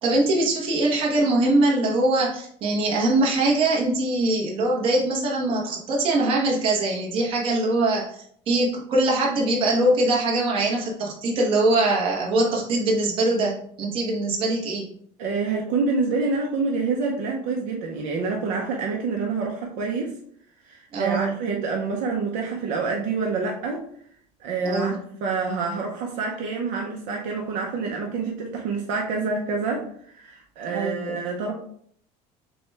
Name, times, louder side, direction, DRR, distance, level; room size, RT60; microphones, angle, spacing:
voice 1, 0.0-14.9 20.9-21.3 24.6-25.0 30.7-31.2, right 2 dB, 35° right, -2 dB, 1.1 m, -22 dB
voice 2, 15.2-20.2 20.6-23.9 24.4-24.9 25.2-31.5, right 4 dB, 60° right, 0 dB, 0.8 m, -27 dB
6.9 x 2.3 x 3.3 m, 0.64 s
cardioid pair, 175°, 15 cm